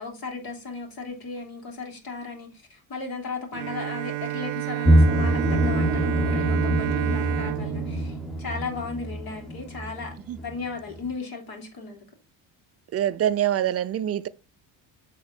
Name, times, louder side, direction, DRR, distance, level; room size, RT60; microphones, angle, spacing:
voice 1, 0.0-10.1 10.4-12.0, left 4 dB, 55° left, 3.1 m, -36 dB
Bowed string instrument, 3.5-9.2, right 19 dB, 85° right, 0.6 m, -30 dB
sound 1, 4.8-10.7 10.9-11.0, equal, ahead, 0.8 m, -24 dB
voice 2, 12.9-14.3, right 11 dB, 35° right, 0.4 m, -24 dB
7.9 x 3.8 x 4.2 m
cardioid pair, 100°, 43 cm